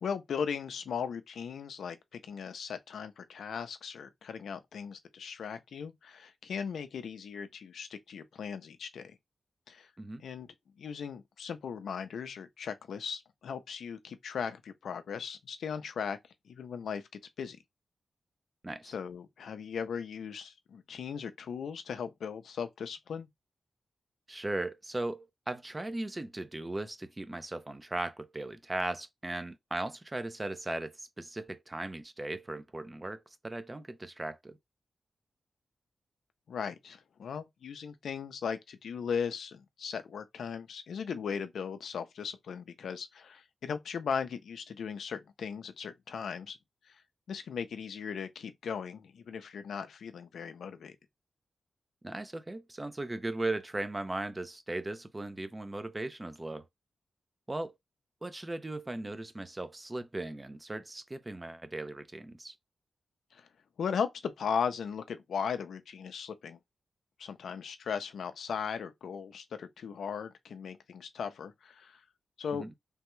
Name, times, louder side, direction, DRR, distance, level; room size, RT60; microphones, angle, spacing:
voice 1, 0.0-9.2 9.7-9.9 10.2-10.5 10.8-16.2 16.5-17.6 18.8-23.3 36.5-46.6 47.3-51.0 63.3-63.5 63.8-66.6 67.2-72.0 72.4-72.7, left 6 dB, 90° left, 0.4 m, -38 dB
voice 2, 24.3-34.6 52.0-56.6 57.5-57.7 58.2-62.5 72.5-72.7, right 2 dB, 25° right, 0.5 m, -37 dB
3.4 x 2.2 x 3.0 m
cardioid pair, 70°, 0 cm